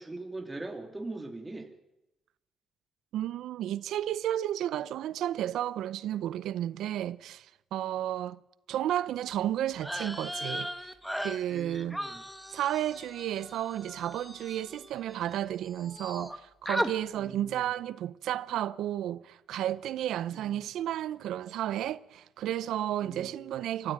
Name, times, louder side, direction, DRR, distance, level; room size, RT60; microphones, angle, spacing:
voice 1, 0.0-1.7 11.5-12.2 17.2-17.6 20.3-20.6 23.0-23.5, right 2 dB, 15° right, 2.5 m, -41 dB
voice 2, 3.1-8.4 8.7-10.7 11.2-12.0 12.5-23.9, right 12 dB, 80° right, 0.7 m, -32 dB
sound 1, 9.8-15.4 15.6-16.4 16.7-16.9, equal, ahead, 1.5 m, -37 dB
24.0 x 13.5 x 9.0 m
cardioid pair, 90°, 0 cm